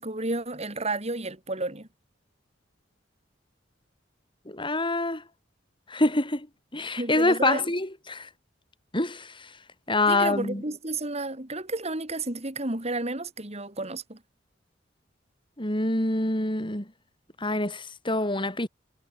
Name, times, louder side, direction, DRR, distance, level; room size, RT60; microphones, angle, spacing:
voice 1, 0.0-1.9 7.0-7.7 10.1-14.2, right 2 dB, 35° right, 4.0 m, -31 dB
voice 2, 4.5-5.2 5.9-6.5 6.7-8.3 8.9-9.5 9.9-10.6 15.6-16.9 17.4-18.7, left 2 dB, 25° left, 6.1 m, -26 dB
head